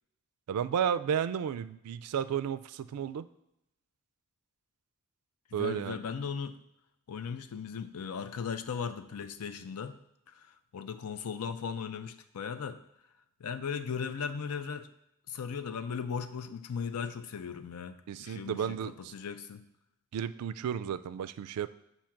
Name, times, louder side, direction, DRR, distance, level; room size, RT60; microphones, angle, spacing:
voice 1, 0.5-3.3 5.5-6.0 18.1-19.1 20.1-21.7, right 8 dB, 85° right, 13 dB, 0.3 m, -33 dB
voice 2, 5.5-6.6 7.1-10.0 10.3-10.5 10.7-12.8 13.4-14.9 15.3-19.6, left 6 dB, 90° left, 10 dB, 0.5 m, -37 dB
7.2 x 2.8 x 5.7 m, 0.81 s
head